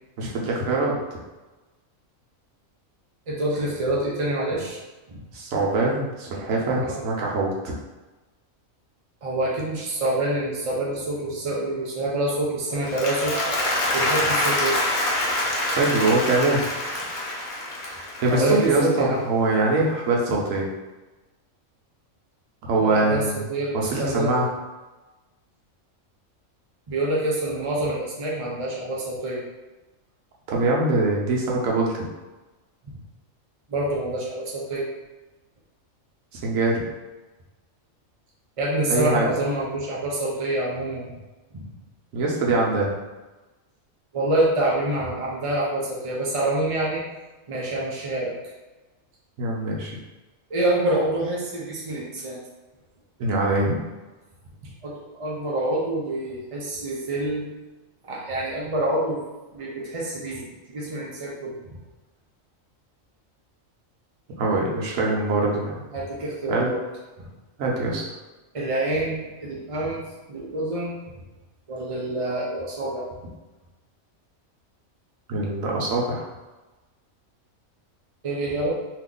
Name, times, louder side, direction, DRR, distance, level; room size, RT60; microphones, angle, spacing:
voice 1, 0.2-1.0 5.3-7.7 15.8-16.6 18.2-20.7 22.6-23.4 23.7-24.5 30.5-32.0 36.3-36.8 38.9-39.3 42.1-43.0 49.4-50.0 53.2-53.7 64.4-65.8 66.5-66.7 67.6-68.0 75.3-76.3, right 2 dB, 75° right, -2 dB, 1.1 m, -23 dB
voice 2, 3.3-4.8 5.1-5.2 6.8-7.0 9.2-13.4 13.9-14.8 18.3-19.2 22.8-24.3 26.9-29.4 32.8-32.9 33.7-34.9 38.6-41.1 41.5-41.7 44.1-47.0 47.5-48.4 50.5-52.4 54.6-57.5 58.0-59.2 59.5-60.4 60.7-61.6 65.9-66.8 68.5-70.0 70.3-71.1 71.7-73.1 78.2-78.7, right 1 dB, 60° right, -5 dB, 0.3 m, -26 dB
Applause, 12.7-19.0, left 1 dB, 70° left, 1.1 m, -26 dB
2.8 x 2.4 x 3.7 m, 1.1 s
omnidirectional pair, 1.4 m